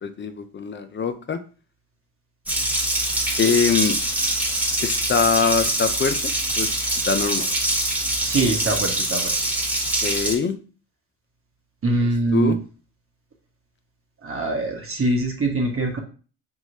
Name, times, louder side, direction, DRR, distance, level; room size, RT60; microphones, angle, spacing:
voice 1, 0.0-1.4 3.4-4.0 4.8-6.2 6.6-6.7 7.1-7.5 10.0-10.6 12.3-12.6, left 6 dB, 25° left, 9 dB, 0.6 m, -22 dB
Water tap faucet, 2.5-10.3, right 1 dB, 5° right, 1.3 m, -24 dB
voice 2, 8.2-9.3 11.8-12.5 14.2-16.0, right 2 dB, 30° right, 1 dB, 1.2 m, -23 dB
5.4 x 2.9 x 2.7 m, 0.37 s
hypercardioid pair, 60°, 42 cm